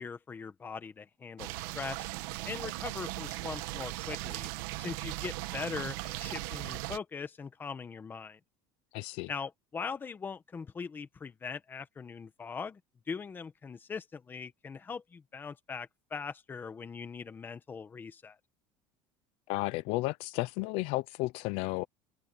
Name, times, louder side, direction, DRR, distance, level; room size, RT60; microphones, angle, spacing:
voice 1, 0.0-2.1 2.4-4.5 4.8-8.4 9.3-12.8 13.1-18.4, left 5 dB, 20° left, 1.4 m, -41 dB
sound 1, 1.4-7.0, right 20 dB, 80° right, 1.4 m, -38 dB
voice 2, 8.9-9.3 19.5-21.8, left 21 dB, 65° left, 0.7 m, -33 dB
cardioid pair, 160°, 11 cm